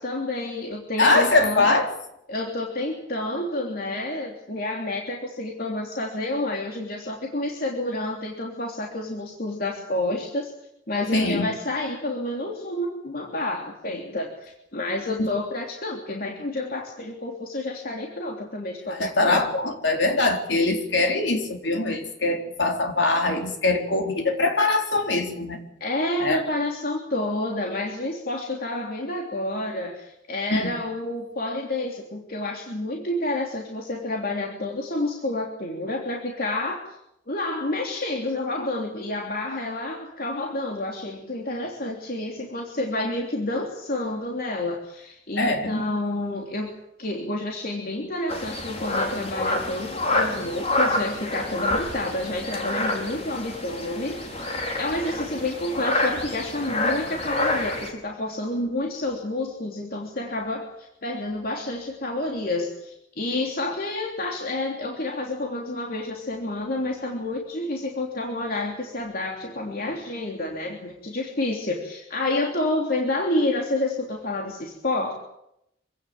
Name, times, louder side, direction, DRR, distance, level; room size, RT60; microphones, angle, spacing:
voice 1, 0.0-1.7 2.3-10.5 10.9-19.4 25.8-36.8 37.3-46.7 47.0-75.1, left 2 dB, 55° left, 0 dB, 3.2 m, -29 dB
voice 2, 1.0-1.9 11.1-11.5 15.2-15.3 18.9-25.6 26.2-26.4 30.5-30.7 45.4-45.8, left 2 dB, 80° left, 3 dB, 4.2 m, -22 dB
sound 1, 48.3-57.9, left 2 dB, 35° left, 4.9 m, -28 dB
26.0 x 16.5 x 9.0 m, 0.83 s
head